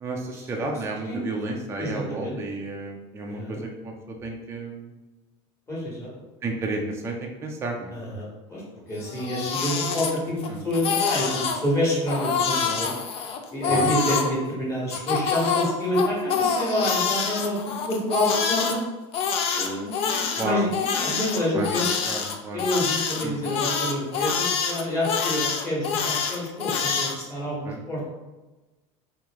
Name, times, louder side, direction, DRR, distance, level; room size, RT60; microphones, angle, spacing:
voice 1, 0.0-3.9 4.2-4.9 6.4-7.9 10.5-10.6 13.7-13.9 20.4-20.7 21.5-21.7 22.1-22.6 23.2-23.4 27.7-27.8, right 2 dB, 20° right, 0 dB, 0.4 m, -32 dB
voice 2, 1.8-2.4 3.3-3.6 5.7-6.1 7.9-8.6 8.9-12.9 13.5-18.8 19.6-21.9 22.5-28.1, equal, 20° left, -6 dB, 1.5 m, -28 dB
Crying sobbing, 9.0-10.5 10.7-11.6 12.1-14.3 14.9-18.7 19.1-27.2, left 6 dB, 45° left, 0.4 m, -26 dB
3.1 x 2.8 x 3.5 m, 1.1 s
cardioid pair, 135°, 14 cm